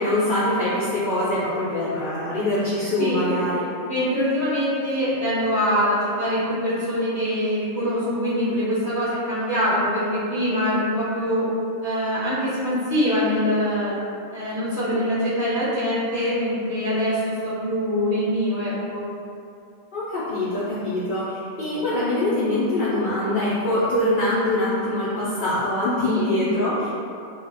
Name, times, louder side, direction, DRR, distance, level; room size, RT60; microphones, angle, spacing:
voice 1, 0.0-3.7 19.9-26.9, left 1 dB, 65° left, -10 dB, 0.5 m, -23 dB
voice 2, 3.9-11.5 11.8-13.9 14.3-19.0 26.0-26.3, equal, 35° right, -13 dB, 0.7 m, -24 dB
2.4 x 2.1 x 3.3 m, 2.5 s
omnidirectional pair, 1.5 m